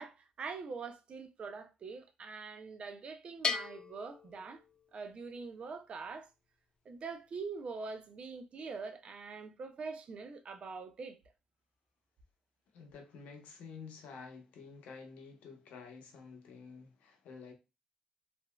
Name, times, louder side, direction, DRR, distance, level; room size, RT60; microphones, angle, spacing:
voice 1, 0.0-4.6 4.9-6.3 6.9-11.2, right 4 dB, 50° right, 0.5 m, -44 dB
Bell, 3.4-5.2, left 5 dB, 40° left, 0.3 m, -38 dB
voice 2, 12.7-17.5, left 5 dB, 80° left, 0.7 m, -50 dB
2.9 x 2.5 x 2.2 m
cardioid pair, 80°, 2 cm